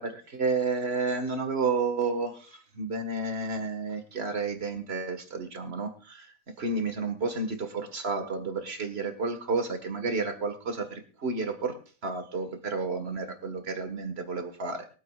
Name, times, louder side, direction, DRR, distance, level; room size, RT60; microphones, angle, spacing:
voice 1, 0.0-11.8 12.0-14.9, right 4 dB, 50° right, 7 dB, 1.9 m, -31 dB
23.0 x 8.5 x 2.4 m, 0.40 s
omnidirectional pair, 1.4 m